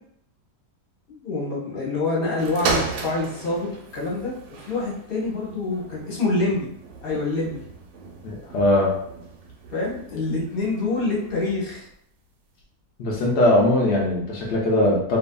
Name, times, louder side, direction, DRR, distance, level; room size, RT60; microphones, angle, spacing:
voice 1, 1.1-4.4 4.7-6.7 7.0-7.6 9.7-11.9, left 3 dB, 40° left, -5 dB, 0.9 m, -26 dB
sound 1, 2.4-11.9 12.6-12.7, right 4 dB, 80° right, 1.2 m, -35 dB
voice 2, 8.2-9.0 13.0-15.2, left 1 dB, 85° left, -3 dB, 0.5 m, -20 dB
2.7 x 2.5 x 2.2 m, 0.70 s
omnidirectional pair, 1.9 m